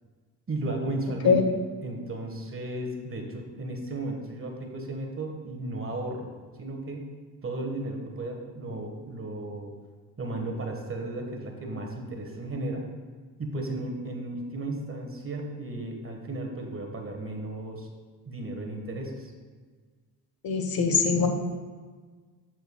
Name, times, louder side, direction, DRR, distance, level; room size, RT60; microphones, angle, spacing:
voice 1, 0.5-1.4 1.8-6.3 6.6-7.1 7.4-9.7 10.2-12.9 13.4-17.9 18.3-19.3, right 2 dB, 30° right, 3 dB, 1.4 m, -34 dB
voice 2, 20.4-21.3, left 5 dB, 55° left, 5 dB, 1.0 m, -22 dB
13.0 x 4.5 x 2.3 m, 1.5 s
supercardioid pair, 55°, 44 cm